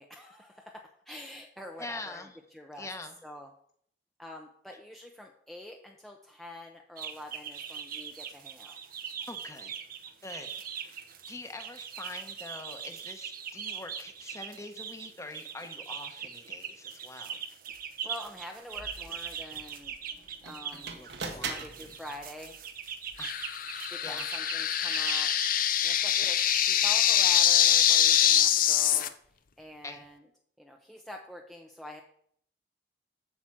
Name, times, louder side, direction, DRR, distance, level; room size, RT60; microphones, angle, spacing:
voice 1, 0.0-2.9 3.2-3.5 4.2-8.8 18.0-19.9 20.4-22.6 23.9-25.3 25.8-26.4 26.7-29.1 29.6-30.2 30.6-32.0, equal, ahead, 1 dB, 0.8 m, -46 dB
voice 2, 1.8-2.4 2.8-3.1 9.3-9.7 10.2-11.0 11.3-17.4 20.7-22.0 23.2-23.3 24.0-24.3 29.8-30.0, left 2 dB, 20° left, 6 dB, 1.1 m, -44 dB
sound 1, 7.0-26.6, right 7 dB, 55° right, 0.9 m, -41 dB
sound 2, 17.7-17.8 18.2-23.4, right 4 dB, 75° right, 1.5 m, -43 dB
sound 3, 23.2-29.1, left 10 dB, 55° left, 0.6 m, -24 dB
8.2 x 6.1 x 7.6 m, 0.65 s
head